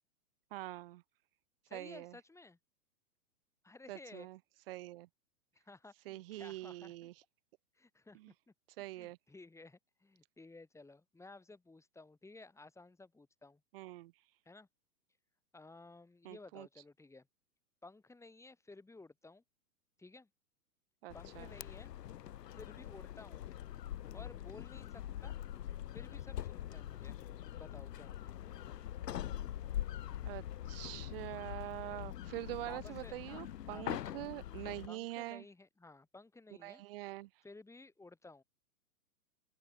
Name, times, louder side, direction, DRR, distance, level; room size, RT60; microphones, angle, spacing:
voice 1, 0.5-1.0 1.7-2.2 3.9-4.4 4.7-5.1 6.1-7.1 8.1-8.3 8.8-9.2 13.7-14.1 16.2-16.7 21.0-21.5 30.2-35.4 36.6-37.3, right 17 dB, 40° right, 0.5 m, -44 dB
voice 2, 1.7-2.6 3.6-4.3 5.5-7.1 7.7-8.2 8.5-13.6 14.5-14.7 15.5-17.3 17.8-19.4 20.0-20.3 21.1-21.9 22.5-23.5 24.1-25.4 25.9-27.2 27.6-28.3 32.6-34.1 34.9-36.8 37.4-38.4, left 3 dB, 5° left, 5.3 m, -55 dB
sound 1, 21.1-34.9, left 11 dB, 90° left, 0.7 m, -43 dB
open air
hypercardioid pair, 125°, 47 cm